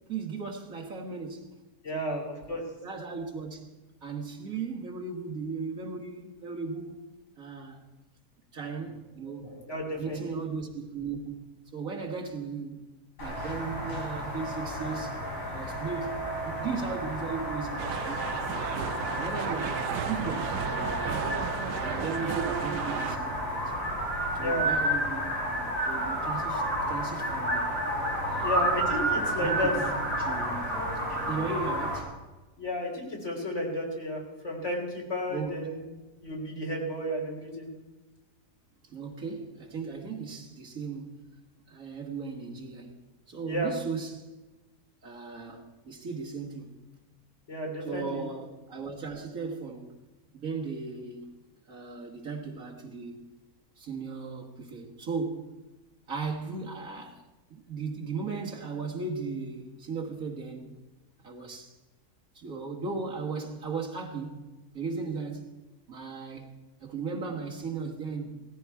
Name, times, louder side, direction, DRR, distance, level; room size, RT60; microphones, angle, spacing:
voice 1, 0.1-1.5 1.9-2.4 2.8-3.7 4.0-7.0 7.4-7.8 8.5-9.6 10.0-12.8 13.2-15.2 15.5-16.1 16.4-18.3 18.7-21.5 22.0-23.7 24.3-27.7 28.3-28.7 29.4-30.8 31.3-32.1 35.3-35.8 38.8-41.4 41.7-43.0 43.3-44.3 45.0-46.8 47.9-50.0 50.3-51.3 51.7-53.2 53.8-55.6 56.1-57.2 57.5-60.8 61.2-61.7 62.3-65.6 65.9-66.5 66.8-68.4, right 4 dB, 55° right, 1.9 m, -37 dB
voice 2, 1.8-2.6 9.4-10.3 24.4-24.7 28.4-29.7 32.6-35.9 36.2-37.7 43.5-43.7 47.5-48.2, equal, 45° left, 3.5 m, -32 dB
sound 1, 13.2-32.0, right 1 dB, 85° left, 5.5 m, -31 dB
sound 2, 17.8-23.2, right 10 dB, 85° right, 1.3 m, -35 dB
18.5 x 14.5 x 4.7 m
omnidirectional pair, 1.7 m